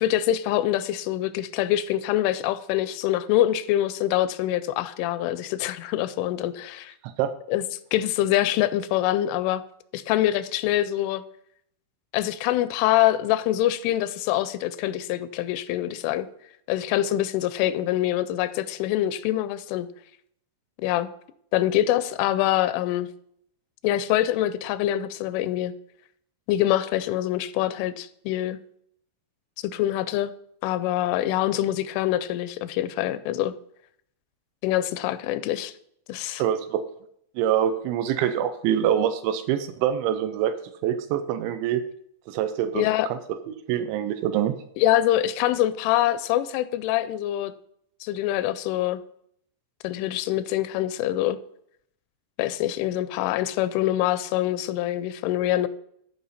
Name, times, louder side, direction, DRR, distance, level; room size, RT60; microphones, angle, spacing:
voice 1, 0.0-6.9 7.5-7.6 7.9-9.6 9.9-11.2 12.1-16.3 16.7-19.9 20.8-21.1 21.5-23.1 23.8-25.7 26.5-28.6 29.6-30.3 30.6-33.5 34.6-35.7 36.1-36.4 42.7-43.1 44.8-47.5 48.0-49.0 49.8-51.4 52.4-55.7, left 13 dB, 85° left, 14 dB, 3.0 m, -25 dB
voice 2, 36.4-36.8 37.4-40.5 40.8-41.8 42.3-43.2 43.7-44.5, right 10 dB, 80° right, 10 dB, 2.8 m, -25 dB
14.0 x 5.4 x 4.1 m, 0.69 s
omnidirectional pair, 5.5 m